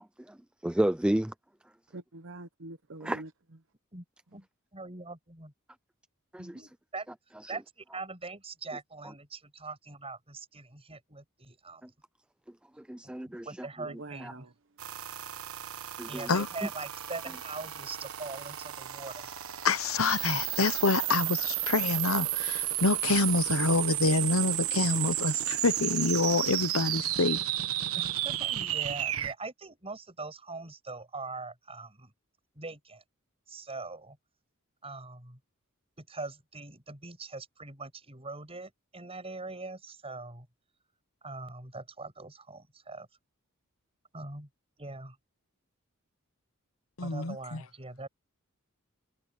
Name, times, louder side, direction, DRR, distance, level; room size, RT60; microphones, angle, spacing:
voice 1, 0.6-1.3 3.0-3.2 6.3-6.5 12.9-13.4 14.2-14.3 16.0-16.3, right 1 dB, 5° right, 0.3 m, -30 dB
voice 2, 1.9-3.3 13.8-14.5, right 2 dB, 65° right, 0.9 m, -44 dB
voice 3, 4.7-5.5 6.4-7.1 7.5-11.9 13.0-13.1 13.4-14.5 16.1-19.4 27.9-32.1 32.5-33.0 33.5-34.2 34.8-35.4 36.0-40.5 41.2-43.1 44.1-44.5 44.8-45.2 47.0-48.1, right 3 dB, 30° right, 6.8 m, -42 dB
sound 1, 14.8-29.3, right 13 dB, 85° right, 1.3 m, -32 dB
voice 4, 19.6-27.4 47.0-47.6, left 3 dB, 75° left, 1.0 m, -27 dB
head